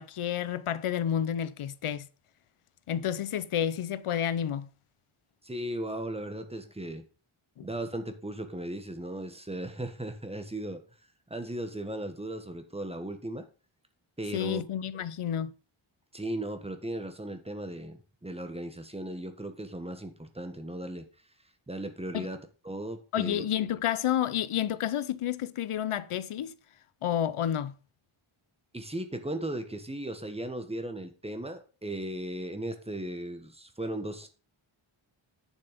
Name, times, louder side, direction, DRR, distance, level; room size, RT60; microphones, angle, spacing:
voice 1, 0.0-2.1 2.9-4.7 7.6-7.7 14.3-15.5 22.1-22.3 23.1-26.5 27.0-27.7, left 10 dB, 80° left, 0.7 m, -30 dB
voice 2, 5.4-7.0 7.6-10.8 11.3-13.5 14.2-14.6 16.1-21.0 21.7-22.4 22.6-23.4 28.7-34.3, right 1 dB, 10° right, 1.3 m, -37 dB
9.0 x 7.2 x 5.1 m
wide cardioid pair, 145°, 50 cm